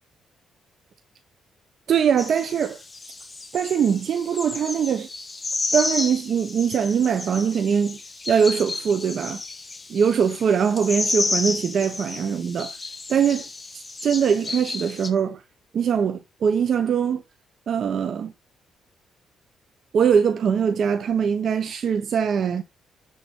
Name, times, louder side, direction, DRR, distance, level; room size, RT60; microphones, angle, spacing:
voice 1, 1.9-2.8 3.5-5.1 5.7-8.0 8.3-9.4 9.9-12.7 13.1-13.4 14.0-15.4 15.7-17.2 17.7-18.3 19.9-22.6, right 7 dB, 60° right, 0.9 m, -22 dB
sound 1, 2.2-15.1, left 3 dB, 25° left, 1.5 m, -32 dB
10.5 x 3.8 x 5.3 m
cardioid pair, 90°, 0 cm